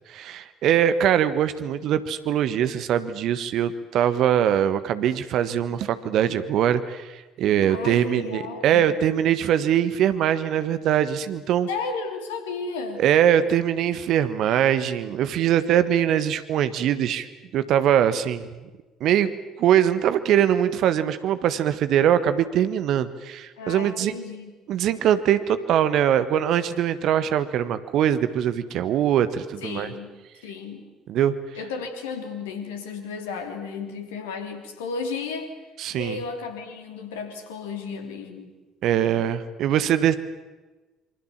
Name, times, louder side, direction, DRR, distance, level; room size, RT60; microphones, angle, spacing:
voice 1, 0.1-11.7 13.0-18.6 19.0-19.3 19.6-24.1 24.7-29.9 31.1-31.3 35.8-36.2 38.8-40.2, right 10 dB, 50° right, 12 dB, 1.5 m, -22 dB
voice 2, 7.7-8.8 11.7-13.0 23.6-24.5 29.6-30.1 30.4-30.9 31.5-35.5 35.9-38.5, left 4 dB, 70° left, 6 dB, 3.3 m, -33 dB
27.0 x 25.0 x 7.5 m, 1.2 s
figure-of-eight pair, 55°, 0 cm